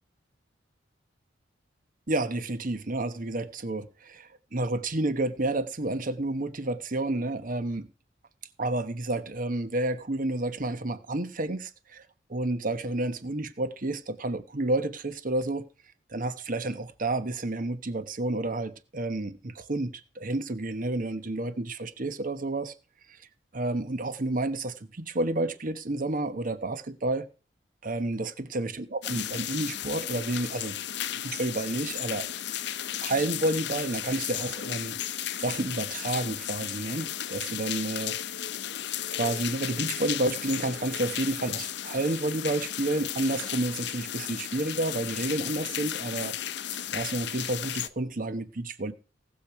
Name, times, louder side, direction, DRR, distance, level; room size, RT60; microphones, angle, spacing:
voice 1, 2.1-7.9 8.6-12.0 12.3-15.7 16.1-22.7 23.1-23.2 23.5-27.2 27.8-30.8 31.2-32.3 33.0-35.0 35.4-38.2 39.1-46.4 46.9-48.9, right 2 dB, 45° right, 1.0 m, -30 dB
sound 1, 29.0-47.9, left 11 dB, 65° left, 0.7 m, -34 dB
18.5 x 6.6 x 4.7 m
head